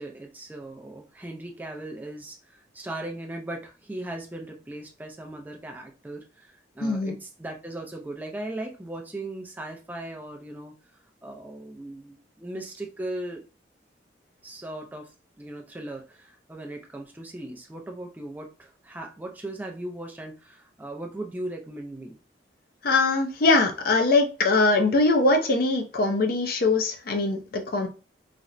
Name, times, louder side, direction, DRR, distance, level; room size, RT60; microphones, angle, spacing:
voice 1, 0.0-10.7 11.2-13.4 14.4-22.2, right 1 dB, 10° right, 2 dB, 0.4 m, -38 dB
voice 2, 6.8-7.2 22.8-27.9, left 3 dB, 55° left, 4 dB, 0.5 m, -22 dB
4.1 x 2.0 x 2.5 m, 0.32 s
head